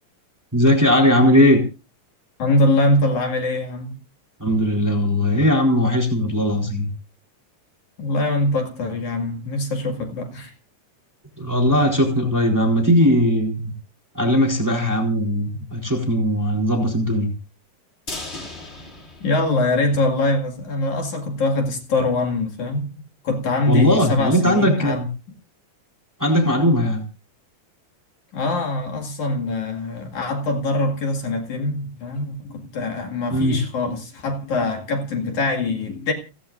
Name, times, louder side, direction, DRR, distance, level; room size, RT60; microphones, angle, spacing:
voice 1, 0.5-1.6 4.4-6.9 11.4-13.7 14.1-17.3 23.7-25.1 26.2-27.0 33.3-33.6, equal, 5° right, 3.6 m, -18 dB
voice 2, 2.4-4.0 8.0-10.5 19.2-22.9 23.2-25.0 28.3-36.1, left 2 dB, 60° left, 3.4 m, -23 dB
sound 1, 18.1-20.2 20.5-20.6 21.0-21.1, left 2 dB, 20° left, 2.7 m, -37 dB
29.5 x 10.5 x 2.6 m
omnidirectional pair, 3.9 m